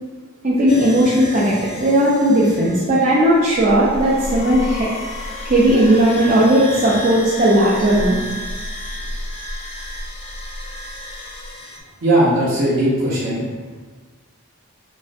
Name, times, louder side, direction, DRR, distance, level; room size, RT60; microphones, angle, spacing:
voice 1, 0.4-4.9 5.4-8.2, right 1 dB, 35° right, -7 dB, 0.6 m, -16 dB
sound 1, 0.7-11.8, left 1 dB, 25° left, 0.5 m, -31 dB
voice 2, 12.0-13.4, right 1 dB, 65° right, -10 dB, 1.2 m, -18 dB
6.0 x 2.6 x 2.5 m, 1.5 s
head